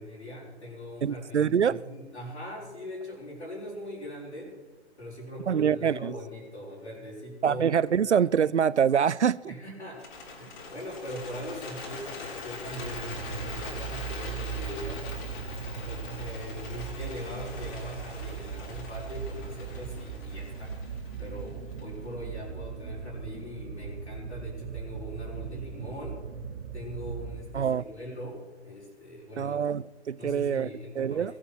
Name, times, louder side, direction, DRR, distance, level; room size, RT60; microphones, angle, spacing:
voice 1, 0.0-4.5 5.0-7.7 8.0-8.3 9.5-10.1 10.4-15.3 15.8-26.2 26.7-29.6 30.2-31.4, left 1 dB, 75° left, 6.3 m, -41 dB
voice 2, 1.0-1.8 5.5-6.1 7.4-9.5 27.5-27.8 29.4-30.7 31.0-31.3, right 8 dB, 80° right, 0.5 m, -25 dB
Bird, 9.9-22.1, left 3 dB, 45° left, 6.4 m, -42 dB
sound 1, 12.6-28.0, right 7 dB, 50° right, 1.8 m, -38 dB
21.5 x 9.1 x 6.3 m
figure-of-eight pair, 125°, 34 cm